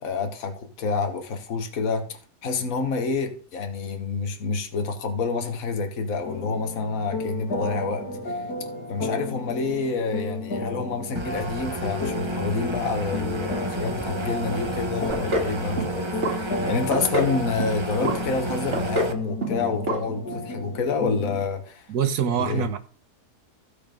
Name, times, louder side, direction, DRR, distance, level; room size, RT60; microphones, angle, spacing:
voice 1, 0.0-8.4 8.9-21.9 22.4-22.7, left 4 dB, 65° left, 1.7 m, -28 dB
sound 1, 6.2-21.5, left 3 dB, 90° left, 2.2 m, -33 dB
sound 2, 11.2-19.1, right 2 dB, 25° right, 0.8 m, -32 dB
sound 3, 15.1-15.5 15.8-16.3 16.7-17.3 17.6-18.2 18.5-19.2 19.4-19.6 19.9-20.0 20.3-20.4, right 1 dB, 50° right, 2.0 m, -26 dB
voice 2, 21.9-22.8, right 8 dB, 85° right, 1.5 m, -24 dB
15.0 x 5.1 x 5.2 m
omnidirectional pair, 1.6 m